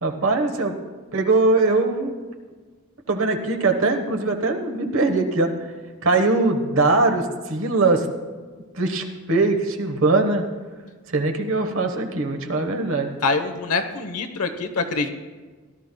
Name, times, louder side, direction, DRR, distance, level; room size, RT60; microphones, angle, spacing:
voice 1, 0.0-0.7 1.1-2.1 3.1-5.7 6.0-8.1 8.7-10.4 11.1-13.1, right 3 dB, 60° right, 4 dB, 1.2 m, -21 dB
voice 2, 13.2-15.1, left 3 dB, 80° left, 8 dB, 1.0 m, -24 dB
17.5 x 12.5 x 2.3 m, 1.4 s
head